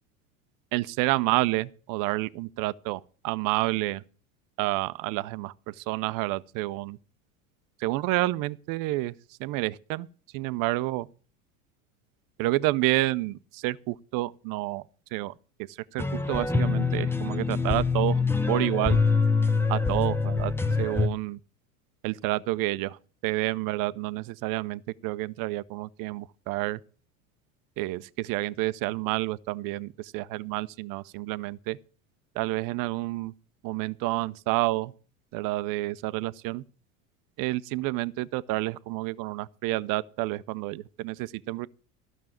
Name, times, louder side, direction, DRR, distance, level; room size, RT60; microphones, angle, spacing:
voice 1, 0.7-4.0 4.6-7.0 7.8-9.1 9.4-10.1 10.3-11.1 12.4-14.8 15.1-15.3 15.7-18.2 18.5-19.0 19.7-20.5 20.8-21.4 22.0-23.0 23.2-26.8 27.8-31.8 32.3-33.3 33.6-34.9 35.3-36.6 37.4-41.7, right 19 dB, 50° right, 0.7 m, -29 dB
sound 1, 16.0-21.1, left 4 dB, 5° left, 0.7 m, -25 dB
12.5 x 6.3 x 7.3 m
hypercardioid pair, 90°, 42 cm